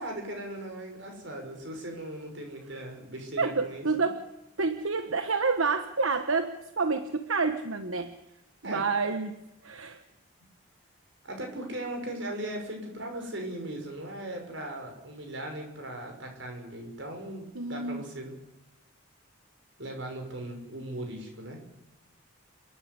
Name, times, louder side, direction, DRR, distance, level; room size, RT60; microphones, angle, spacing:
voice 1, 0.0-3.9 8.6-8.9 11.2-18.4 19.8-21.6, right 1 dB, 65° right, 3 dB, 6.3 m, -38 dB
voice 2, 3.4-4.2 4.6-8.2 8.6-9.3 9.6-10.0 17.5-18.0, right 4 dB, 90° right, 7 dB, 1.3 m, -28 dB
28.5 x 11.0 x 9.8 m, 0.94 s
head